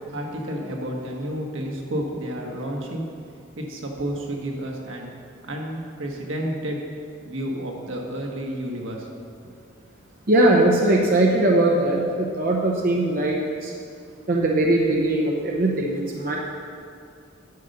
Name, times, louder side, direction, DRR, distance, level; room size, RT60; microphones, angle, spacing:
voice 1, 0.1-3.0 3.6-5.1 5.5-6.8 7.2-9.1, right 1 dB, 80° right, 0 dB, 1.4 m, -30 dB
voice 2, 10.3-13.7 14.3-16.4, right 1 dB, 45° right, -1 dB, 0.8 m, -20 dB
9.7 x 5.5 x 6.6 m, 2.4 s
head